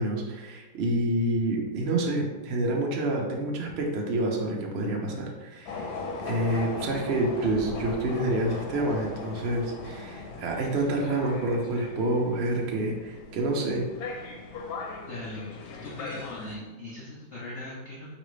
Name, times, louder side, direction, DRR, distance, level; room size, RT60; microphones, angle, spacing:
voice 1, 0.0-5.9 6.2-13.9, right 1 dB, 85° right, 0 dB, 0.5 m, -28 dB
sound 1, 5.7-16.6, left 3 dB, 90° left, 1.5 m, -38 dB
voice 2, 15.1-15.6 15.8-18.1, left 1 dB, 65° left, -5 dB, 0.7 m, -39 dB
5.1 x 3.1 x 3.1 m, 1.2 s
omnidirectional pair, 2.1 m